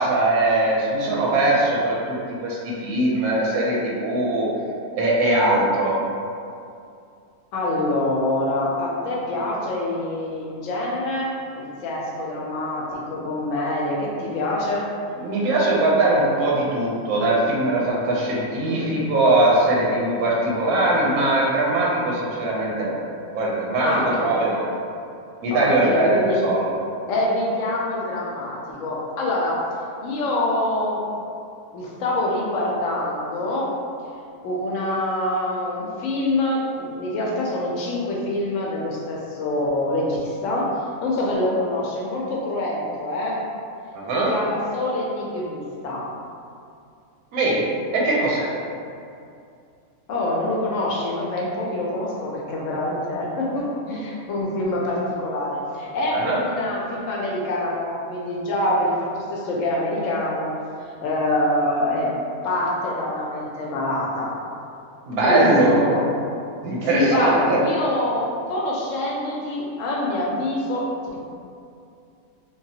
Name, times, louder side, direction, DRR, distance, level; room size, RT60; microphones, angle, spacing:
voice 1, 0.0-4.5 4.9-5.9 15.2-23.0 23.3-24.6 25.4-26.7 43.9-44.3 47.3-47.6 47.9-48.5 56.1-56.4 65.1-65.8 66.6-67.6, right 2 dB, 85° right, -4 dB, 1.1 m, -21 dB
voice 2, 7.5-14.9 18.6-19.0 23.8-24.4 25.5-26.4 27.1-29.6 30.0-31.0 31.7-33.7 34.4-40.7 41.0-43.4 44.3-46.0 50.1-60.5 61.0-62.1 62.4-64.3 65.2-65.5 65.7-66.0 66.9-70.9, left 1 dB, 70° left, -3 dB, 0.8 m, -25 dB
3.4 x 2.3 x 2.7 m, 2.5 s
omnidirectional pair, 1.5 m